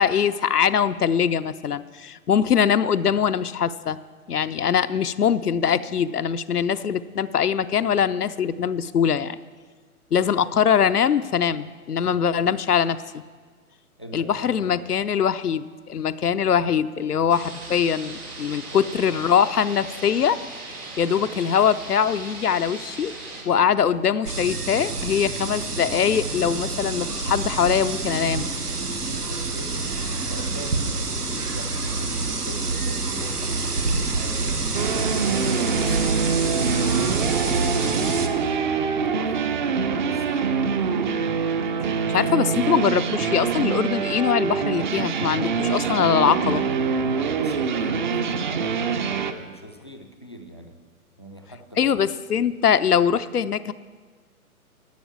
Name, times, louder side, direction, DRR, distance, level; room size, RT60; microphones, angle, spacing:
voice 1, 0.0-4.0 4.3-9.4 10.1-13.2 14.1-20.4 20.7-23.1 23.4-28.5 42.1-46.6 51.8-53.7, left 8 dB, 85° left, 12 dB, 0.6 m, -22 dB
voice 2, 14.0-14.9 18.7-19.3 29.3-29.9 30.3-34.6 35.1-40.4 47.1-50.8 51.2-51.9, right 1 dB, 20° left, 5 dB, 0.3 m, -42 dB
sound 1, 17.3-23.4, right 2 dB, 75° right, 3.6 m, -38 dB
sound 2, 24.3-38.3, right 3 dB, 90° right, 1.2 m, -27 dB
sound 3, 34.7-49.3, right 6 dB, 35° right, 0.5 m, -25 dB
11.5 x 7.2 x 7.2 m, 1.5 s
figure-of-eight pair, 120°, 45 cm